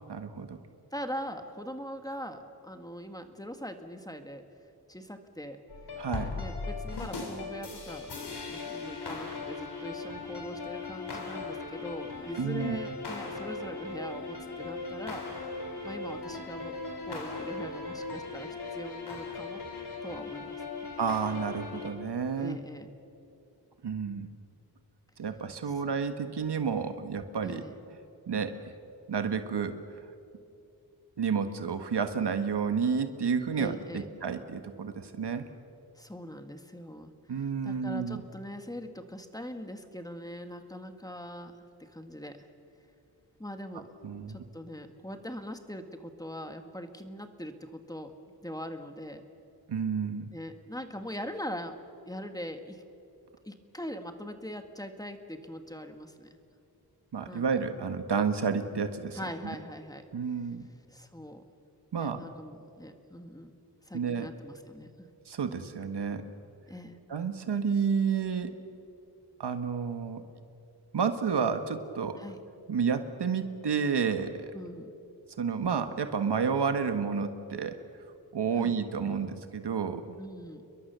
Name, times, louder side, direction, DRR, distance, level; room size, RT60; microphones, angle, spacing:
voice 1, 0.1-0.6 6.0-6.4 12.4-12.8 21.0-22.6 23.8-24.3 25.2-27.6 28.3-28.7 29.1-29.8 31.2-35.5 37.3-38.2 44.0-44.4 49.7-50.3 57.1-59.2 60.1-60.6 61.9-62.2 63.9-64.3 65.3-66.2 67.1-68.5 69.4-70.2 70.9-72.2 72.7-74.5 75.4-77.8 78.3-80.2, right 6 dB, 80° right, 8 dB, 1.5 m, -30 dB
voice 2, 0.9-4.4 4.9-5.6 6.4-15.2 15.8-16.7 17.0-19.6 20.0-20.6 22.4-22.9 25.6-25.7 27.4-27.8 33.6-34.1 36.0-42.5 43.4-43.9 44.3-48.1 48.4-49.2 50.3-51.8 52.0-52.8 53.4-56.4 57.2-57.4 59.1-60.0 60.9-61.4 61.9-63.5 63.8-65.1 66.7-67.0 72.2-72.4 74.5-74.9 78.5-78.8 80.2-80.6, equal, 10° left, 7 dB, 1.6 m, -41 dB
sound 1, 5.7-21.9, left 3 dB, 75° left, 3.9 m, -38 dB
29.0 x 22.0 x 6.8 m, 2.6 s
wide cardioid pair, 115°, 40 cm